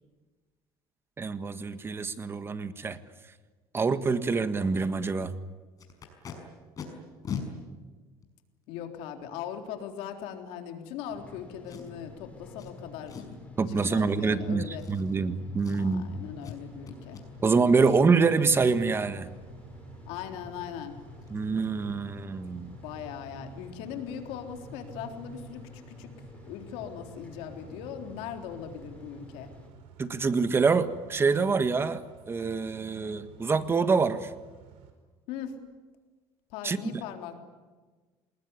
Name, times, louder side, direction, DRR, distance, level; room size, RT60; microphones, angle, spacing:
voice 1, 1.2-3.0 3.7-5.3 13.6-16.1 17.4-19.4 21.3-22.7 30.0-34.3 36.6-37.0, right 4 dB, 25° right, 11 dB, 1.5 m, -26 dB
Packing tape duct tape, 5.8-6.3 6.8-6.9 7.2-7.4 8.2-8.3 11.7-12.1 12.6-12.7 13.1-13.4 13.7-14.1 14.8-15.3 15.6-16.0 16.4-16.6 16.9-17.2 20.3-20.4 20.7-20.9 21.2-21.4 21.6-21.9 22.2-22.3, left 7 dB, 35° left, 5.9 m, -40 dB
voice 2, 8.7-13.2 13.7-14.9 15.8-17.2 18.0-18.1 20.1-20.9 22.8-26.1 26.4-29.5 35.3-35.5 36.5-37.4, left 8 dB, 80° left, 5 dB, 3.7 m, -40 dB
sound 1, 11.1-29.7, left 3 dB, 15° left, 6.5 m, -49 dB
Car / Idling / Accelerating revving vroom, 15.8-34.9, right 7 dB, 80° right, 4.9 m, -52 dB
27.0 x 20.5 x 9.8 m, 1.4 s
cardioid pair, 120°, 10 cm